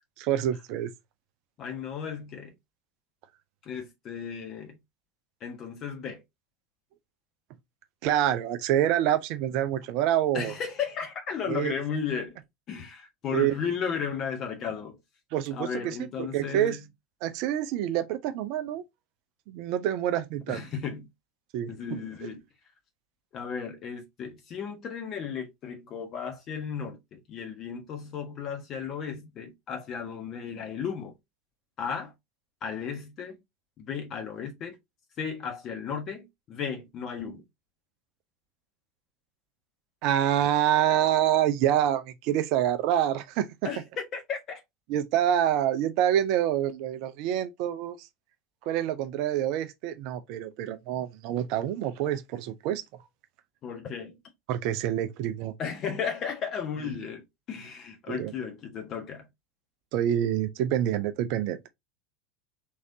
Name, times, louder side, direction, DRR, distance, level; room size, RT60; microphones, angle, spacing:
voice 1, 0.2-0.9 8.0-10.5 11.5-11.7 13.3-13.5 15.3-16.8 17.2-18.8 19.5-20.6 21.5-21.7 22.2-22.3 40.0-43.5 44.9-48.1 48.7-52.8 54.5-55.5 58.1-58.3 59.9-61.7, right 11 dB, 50° right, 0.4 m, -27 dB
voice 2, 1.6-2.5 3.6-4.8 5.4-6.2 10.3-12.4 12.7-15.0 15.5-16.8 20.5-21.1 21.7-22.4 23.3-31.1 31.8-32.1 32.6-33.4 33.8-34.8 35.2-37.4 43.6-44.6 53.6-54.2 55.6-59.3, left 7 dB, 35° left, 1.3 m, -35 dB
3.6 x 3.2 x 2.7 m
figure-of-eight pair, 80°, 0 cm